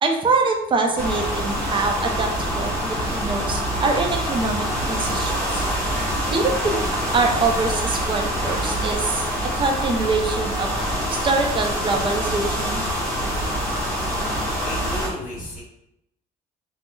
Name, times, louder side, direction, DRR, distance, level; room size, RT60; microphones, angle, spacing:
voice 1, 0.0-5.6 6.3-9.3 9.6-10.7 11.1-12.8, right 3 dB, 30° right, 3 dB, 0.5 m, -24 dB
sound 1, 1.0-15.1, equal, 15° left, 1.1 m, -25 dB
voice 2, 14.3-15.6, left 2 dB, 50° left, -5 dB, 1.0 m, -35 dB
2.6 x 2.0 x 3.5 m, 0.82 s
cardioid pair, 110°, 17 cm